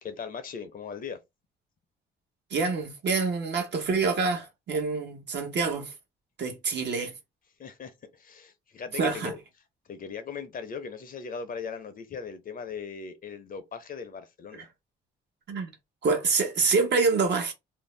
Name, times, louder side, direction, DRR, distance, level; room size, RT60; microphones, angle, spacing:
voice 1, 0.0-1.2 7.6-9.4 9.9-14.7, left 6 dB, 45° left, 0.6 m, -39 dB
voice 2, 2.5-5.9 6.4-7.1 8.9-9.3 14.5-14.6 15.5-15.7 16.0-17.5, right 4 dB, 60° right, 1.0 m, -26 dB
2.6 x 2.0 x 3.1 m
cardioid pair, 90°, 20 cm